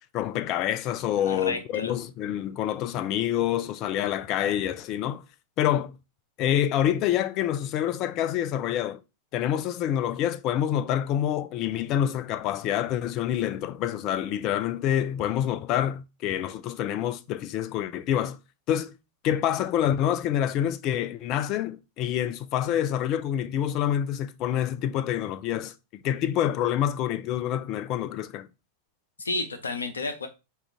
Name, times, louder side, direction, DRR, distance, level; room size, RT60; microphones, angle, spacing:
voice 1, 0.1-5.2 5.6-6.0 6.4-9.0 9.3-18.4 18.7-18.9 19.2-25.7 26.0-28.5, left 11 dB, 40° left, 0.3 m, -27 dB
voice 2, 1.3-1.9 29.2-30.3, left 3 dB, 75° left, 0.7 m, -31 dB
4.6 x 2.5 x 3.3 m
figure-of-eight pair, 90°, 0 cm